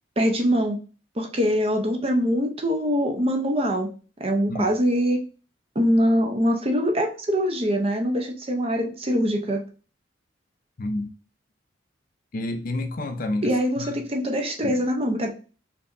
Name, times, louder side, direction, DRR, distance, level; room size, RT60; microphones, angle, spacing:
voice 1, 0.2-0.8 1.2-3.9 4.2-5.2 5.7-9.6 13.4-15.3, equal, 30° right, 0.7 m, -23 dB
voice 2, 10.8-11.1 12.3-14.0 14.6-14.8, left 1 dB, 45° left, 0.6 m, -29 dB
4.5 x 3.0 x 2.6 m
head